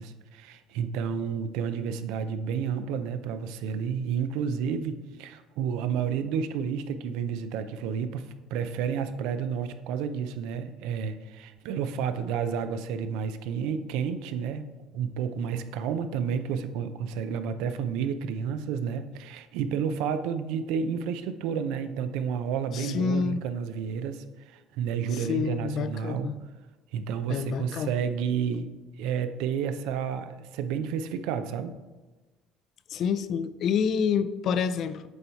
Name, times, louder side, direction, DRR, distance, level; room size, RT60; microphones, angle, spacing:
voice 1, 0.0-26.3 26.9-28.7 29.0-31.8, right 7 dB, 80° right, 0.4 m, -31 dB
voice 2, 22.7-23.4 25.1-26.4 27.3-27.9 32.9-35.1, left 6 dB, 50° left, 0.3 m, -28 dB
8.0 x 2.8 x 4.4 m
cardioid pair, 120°, 0 cm